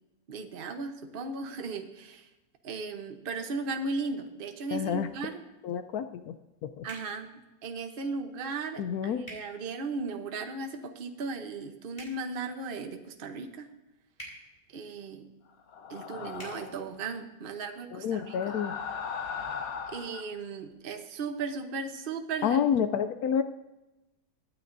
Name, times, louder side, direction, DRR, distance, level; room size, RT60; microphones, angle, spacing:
voice 1, 0.3-2.3 2.6-5.4 6.8-13.7 14.7-15.3 15.9-18.6 19.9-22.6, right 4 dB, 40° right, 6 dB, 0.8 m, -36 dB
voice 2, 4.7-5.1 5.6-6.3 6.6-6.9 8.8-9.3 17.9-18.8 22.4-23.4, left 8 dB, 80° left, 9 dB, 0.8 m, -29 dB
sound 1, 6.9-7.1 9.2-9.4 11.9-12.2 14.1-14.4 16.3-16.5, right 1 dB, 20° left, 4.1 m, -44 dB
sound 2, 15.7-16.9 18.1-20.3, left 6 dB, 55° left, 1.2 m, -38 dB
24.0 x 9.2 x 2.6 m, 1.0 s
omnidirectional pair, 2.1 m